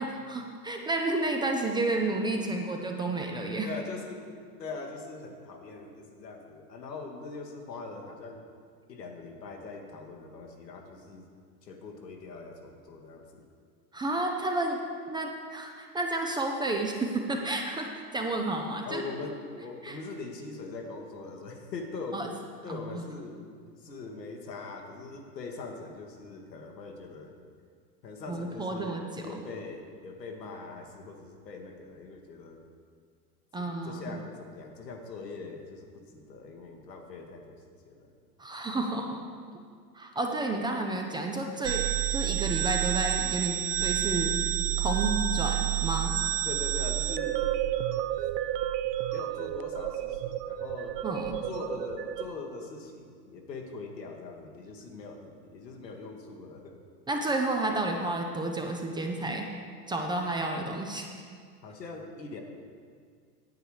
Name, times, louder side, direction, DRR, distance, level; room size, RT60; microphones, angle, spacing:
voice 1, 0.0-3.7 13.9-14.8 15.1-19.0 19.8-20.0 22.1-22.3 22.7-23.0 28.3-29.0 29.3-29.4 33.5-34.2 38.4-39.2 39.9-41.8 42.1-44.4 44.8-46.2 51.0-51.4 57.1-59.5 59.9-61.1, right 2 dB, 10° right, 2 dB, 0.4 m, -31 dB
voice 2, 3.6-8.4 8.9-11.3 11.6-13.5 18.8-22.3 22.6-23.5 23.8-27.3 28.0-32.6 33.6-38.1 46.4-47.4 48.2-48.3 49.1-51.0 51.4-56.8 61.6-62.4, left 3 dB, 90° left, 2 dB, 1.5 m, -42 dB
sound 1, 41.6-52.3, right 13 dB, 80° right, 0.6 m, -30 dB
9.3 x 8.2 x 4.8 m, 2.1 s
hypercardioid pair, 105°, 48 cm